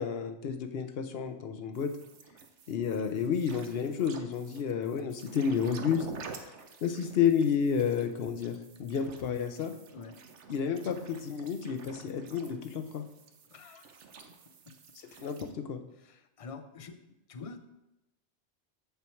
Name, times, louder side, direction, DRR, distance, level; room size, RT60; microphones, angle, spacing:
voice 1, 0.0-1.9 2.7-6.1 6.8-9.7 10.5-13.0 15.2-15.8, left 7 dB, 60° left, 8 dB, 0.9 m, -30 dB
sound 1, 1.7-15.5, right 4 dB, 85° right, 1.1 m, -49 dB
voice 2, 13.5-13.9 15.1-15.3 16.0-16.9 17.3-17.6, left 4 dB, 40° left, 9 dB, 0.5 m, -46 dB
7.4 x 7.0 x 4.5 m, 0.91 s
omnidirectional pair, 1.2 m